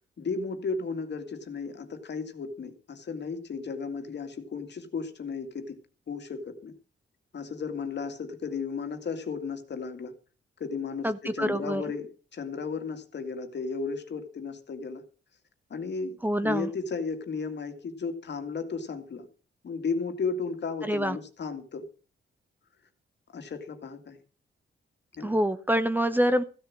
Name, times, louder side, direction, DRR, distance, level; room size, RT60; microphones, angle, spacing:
voice 1, 0.0-5.8 6.1-6.7 7.3-10.1 10.6-15.0 15.7-19.3 19.6-21.9 23.3-24.2 25.2-25.4, left 4 dB, 60° left, 8 dB, 2.1 m, -34 dB
voice 2, 11.0-11.8 16.2-16.7 20.8-21.2 25.2-26.4, equal, 10° right, 12 dB, 0.9 m, -26 dB
15.0 x 7.1 x 7.4 m, 0.38 s
cardioid pair, 105°, 20 cm